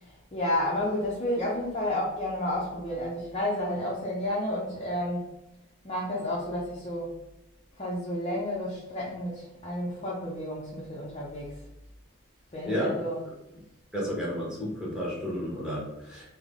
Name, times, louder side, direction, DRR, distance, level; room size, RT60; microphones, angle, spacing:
voice 1, 0.0-5.3 5.8-7.2 7.8-11.6 12.5-13.2, left 1 dB, 30° left, -5 dB, 0.5 m, -31 dB
voice 2, 12.6-13.0 13.3-13.4 13.9-16.3, equal, 5° right, -6 dB, 1.0 m, -32 dB
3.6 x 2.0 x 3.5 m, 0.93 s
head